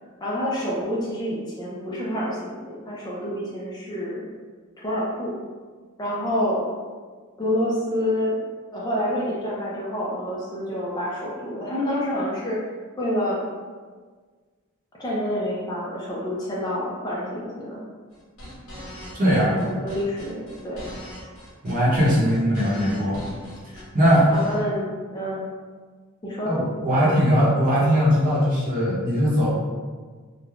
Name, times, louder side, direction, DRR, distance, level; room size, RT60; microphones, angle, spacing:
voice 1, 0.2-4.3 4.8-5.4 6.0-6.7 7.4-8.4 8.7-12.6 13.0-13.4 15.0-17.8 19.4-20.9 24.3-25.4 26.2-26.5, equal, 20° left, -6 dB, 0.4 m, -28 dB
sound 1, 18.1-24.6, equal, 70° left, 0.8 m, -41 dB
voice 2, 19.2-19.6 21.6-23.2 23.7-24.3 26.4-29.5, equal, 40° right, -7 dB, 0.8 m, -20 dB
3.2 x 2.0 x 2.4 m, 1.5 s
head